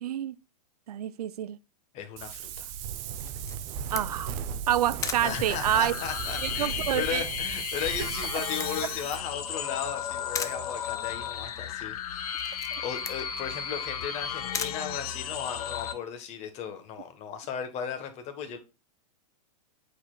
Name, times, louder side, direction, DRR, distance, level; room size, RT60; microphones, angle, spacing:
voice 1, 0.0-0.4 0.9-1.6 3.9-4.4 4.7-5.9 6.4-7.2 12.7-12.8, right 11 dB, 80° right, 0.5 m, -28 dB
voice 2, 1.9-2.7 5.2-18.6, left 8 dB, 35° left, 1.4 m, -36 dB
Wind, 2.2-9.2, right 8 dB, 40° right, 0.8 m, -36 dB
Camera, 3.2-15.7, left 6 dB, 15° left, 0.6 m, -41 dB
sound 1, 5.3-15.9, left 9 dB, 70° left, 1.2 m, -34 dB
8.4 x 4.7 x 2.4 m
hypercardioid pair, 125°, 19 cm